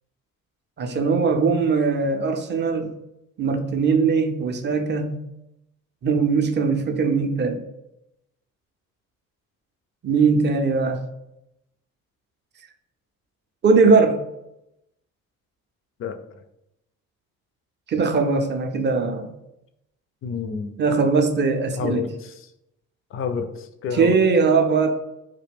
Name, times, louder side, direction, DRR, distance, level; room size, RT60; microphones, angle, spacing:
voice 1, 0.8-2.9 3.4-5.2 6.0-7.6 10.0-11.0 13.6-14.2 17.9-19.3 20.8-22.0 23.9-24.9, right 4 dB, 30° right, 5 dB, 0.4 m, -20 dB
voice 2, 20.2-20.7 21.8-22.3 23.1-24.2, left 6 dB, 35° left, 7 dB, 0.4 m, -29 dB
2.2 x 2.1 x 3.4 m, 0.86 s
hypercardioid pair, 45°, 40 cm